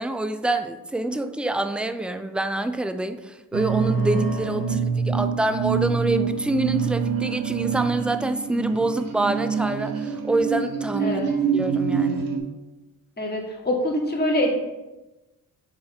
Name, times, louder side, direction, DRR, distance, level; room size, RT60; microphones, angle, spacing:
voice 1, 0.0-4.8 5.1-11.2 11.5-12.3, right 2 dB, 5° right, 10 dB, 0.4 m, -26 dB
sound 1, 3.5-12.4, right 6 dB, 65° right, 0.9 m, -25 dB
voice 2, 11.0-11.3 13.2-14.5, left 1 dB, 25° left, -2 dB, 1.8 m, -25 dB
6.8 x 4.1 x 3.4 m, 1.1 s
supercardioid pair, 60°, 38 cm